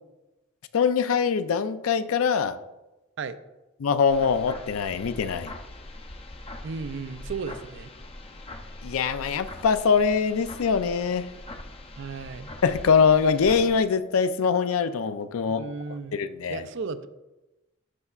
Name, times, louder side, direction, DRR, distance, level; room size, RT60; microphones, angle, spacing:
voice 1, 0.7-2.6 3.8-5.5 8.8-11.3 12.6-15.6 16.1-16.6, left 6 dB, 85° left, 12 dB, 0.4 m, -23 dB
sound 1, 4.1-13.8, left 2 dB, 30° left, 0.5 m, -42 dB
voice 2, 6.6-7.9 12.0-12.5 15.6-16.2 16.5-17.1, right 5 dB, 60° right, 12 dB, 0.4 m, -34 dB
12.5 x 5.4 x 2.4 m, 1.0 s
head